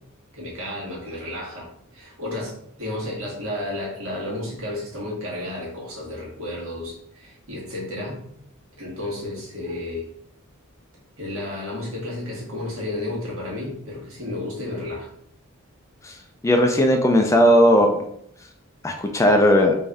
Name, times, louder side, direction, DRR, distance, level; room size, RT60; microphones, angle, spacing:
voice 1, 0.3-8.2 8.8-10.0 11.2-15.1, left 1 dB, 70° right, -4 dB, 1.4 m, -32 dB
voice 2, 16.4-18.0 18.8-19.7, equal, 15° left, 3 dB, 0.3 m, -17 dB
3.3 x 2.6 x 3.4 m, 0.70 s
head